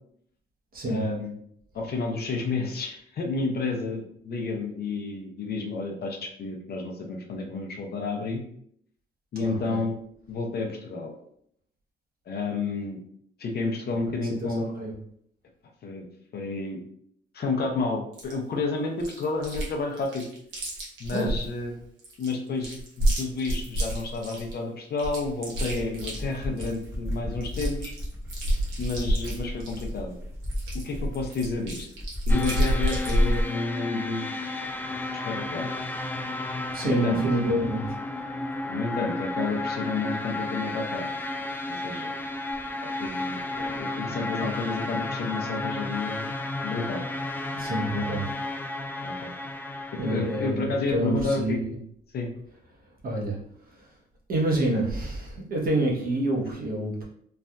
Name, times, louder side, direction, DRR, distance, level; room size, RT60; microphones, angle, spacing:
voice 1, 0.9-1.4 1.7-8.4 9.3-10.0 10.3-11.1 12.3-13.0 13.4-14.7 15.8-16.0 16.3-16.8 17.3-20.2 21.0-21.7 22.2-27.9 28.8-30.2 30.8-31.9 32.3-34.3 35.2-35.7 36.8-37.2 38.7-41.1 41.7-42.1 43.0-46.3 46.6-47.1 47.9-48.1 49.0-49.3 50.0-51.6 52.1-52.3, left 3 dB, 55° left, 2 dB, 0.7 m, -30 dB
voice 2, 9.4-9.9 14.3-14.9 21.1-21.3 36.7-37.8 47.5-48.2 50.0-51.8 53.0-53.4 54.3-57.0, right 1 dB, 45° right, -2 dB, 1.0 m, -27 dB
Chewing mastication, 18.1-18.3 19.0-19.7 20.0-21.5 22.0-24.5 25.0-26.8 27.1-27.2 27.4-29.9 30.4-33.5, equal, 80° right, 1.1 m, -28 dB
sound 1, 25.7-32.7, equal, 15° right, 1.0 m, -35 dB
sound 2, 32.3-50.5, left 2 dB, 10° left, 0.3 m, -33 dB
3.2 x 2.5 x 2.2 m, 0.67 s
cardioid pair, 90°, 20 cm